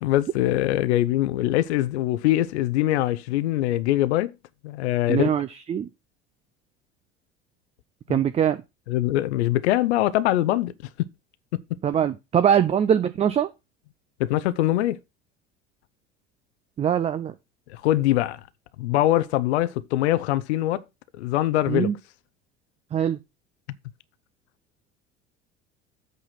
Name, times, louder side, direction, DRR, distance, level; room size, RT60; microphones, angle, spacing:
voice 1, 0.0-4.3 4.6-5.3 8.1-8.2 8.9-10.7 11.0-11.1 11.5-11.6 14.2-15.0 17.7-18.4 18.8-20.8 21.1-21.9, left 14 dB, 65° left, 0.7 m, -23 dB
voice 2, 5.1-5.9 8.1-8.6 11.8-13.5 16.8-17.3 21.7-21.9 22.9-23.2, right 9 dB, 20° right, 0.4 m, -22 dB
8.2 x 4.1 x 5.8 m
figure-of-eight pair, 65°, 35 cm